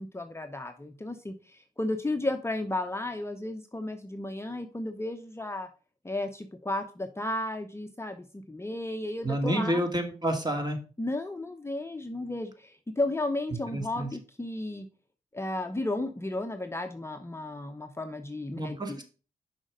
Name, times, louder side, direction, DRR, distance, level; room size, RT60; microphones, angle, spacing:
voice 1, 0.0-5.7 6.0-9.8 11.0-14.9 15.3-19.0, left 2 dB, 15° left, 6 dB, 0.8 m, -33 dB
voice 2, 9.2-10.8 13.7-14.1 18.6-19.0, right 1 dB, 25° right, 4 dB, 2.1 m, -29 dB
6.2 x 5.2 x 5.1 m, 0.36 s
supercardioid pair, 45°, 15 cm